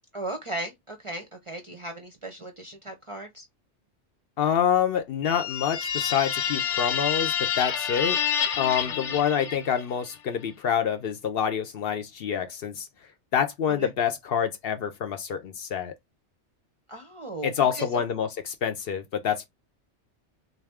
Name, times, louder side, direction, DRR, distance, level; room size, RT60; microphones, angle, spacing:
voice 1, 0.1-3.5 8.8-9.2 13.7-13.9 16.9-18.0, right 2 dB, 40° right, 0.5 m, -37 dB
voice 2, 4.4-8.2 8.6-12.9 13.3-15.9 17.4-19.5, left 8 dB, 60° left, 0.7 m, -27 dB
sound 1, 5.2-10.0, left 8 dB, 85° left, 1.0 m, -28 dB
3.5 x 2.6 x 3.4 m
omnidirectional pair, 1.2 m